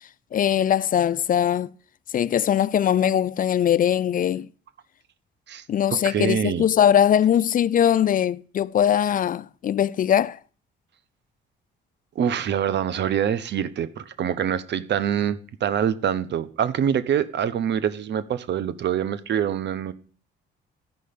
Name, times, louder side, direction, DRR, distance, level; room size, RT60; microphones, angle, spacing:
voice 1, 0.3-1.7 2.1-4.5 5.7-10.4, left 9 dB, 45° left, 0.4 m, -21 dB
voice 2, 5.9-6.6 12.2-19.9, right 9 dB, 65° right, 0.8 m, -25 dB
13.5 x 5.4 x 5.1 m
cardioid pair, 90°, 20 cm